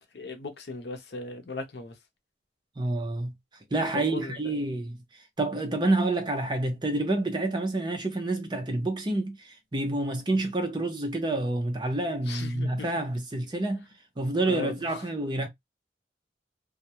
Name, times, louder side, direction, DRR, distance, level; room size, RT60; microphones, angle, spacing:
voice 1, 0.1-1.9 3.9-4.6 12.3-12.9 14.4-15.0, left 3 dB, 65° left, 0.7 m, -38 dB
voice 2, 2.8-3.3 3.7-5.0 5.4-13.8 14.2-15.5, right 2 dB, 25° right, 0.5 m, -28 dB
2.3 x 2.1 x 2.7 m
head